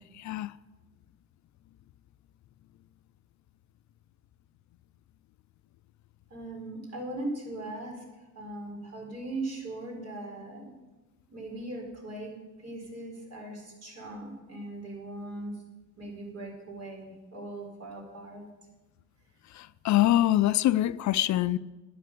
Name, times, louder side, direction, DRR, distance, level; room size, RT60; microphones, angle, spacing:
voice 1, 0.2-0.5 19.5-21.6, left 14 dB, 70° left, 0.5 m, -24 dB
voice 2, 6.3-10.7 11.3-12.3 12.6-15.6 16.0-18.4, right 2 dB, 60° right, 4.9 m, -39 dB
12.0 x 9.2 x 7.8 m
cardioid pair, 90°, 30 cm